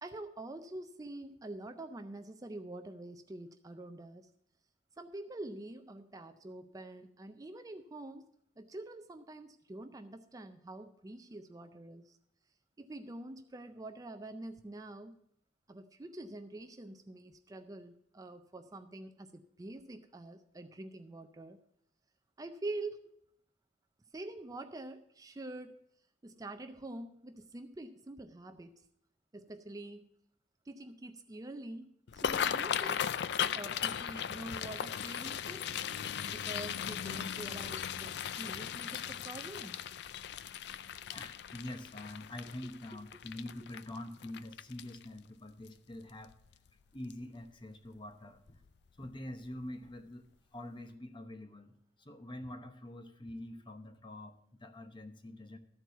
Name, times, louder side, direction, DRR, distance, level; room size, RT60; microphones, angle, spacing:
voice 1, 0.0-4.3 5.0-8.3 8.6-12.2 12.8-15.2 15.7-21.6 22.4-23.0 24.1-25.7 26.2-28.8 29.3-30.1 30.7-33.1 33.5-35.8 36.3-39.8, right 2 dB, 20° right, 8 dB, 0.4 m, -46 dB
sound 1, 32.1-45.2 45.7-45.9 46.3-46.7 47.1-47.3 48.5-48.7 49.0-49.2 49.6-49.7, left 8 dB, 65° left, 0.4 m, -37 dB
voice 2, 41.1-46.3 46.9-48.6 49.0-50.3 50.5-55.6, left 1 dB, 25° left, 8 dB, 0.9 m, -45 dB
13.0 x 4.5 x 7.9 m, 0.72 s
head